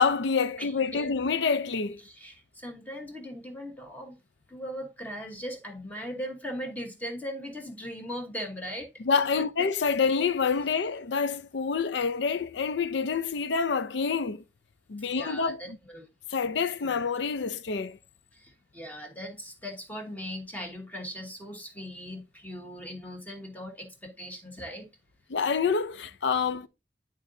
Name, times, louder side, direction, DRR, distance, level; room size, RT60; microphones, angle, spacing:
voice 1, 0.0-2.0 9.0-14.4 14.9-15.8 16.3-18.0 25.3-26.7, left 5 dB, 70° left, 0.5 m, -27 dB
voice 2, 0.6-1.1 2.0-4.2 4.5-8.9 9.4-9.5 15.0-16.1 16.7-17.0 18.3-24.9, equal, 10° left, 1.2 m, -39 dB
11.0 x 3.8 x 2.7 m
head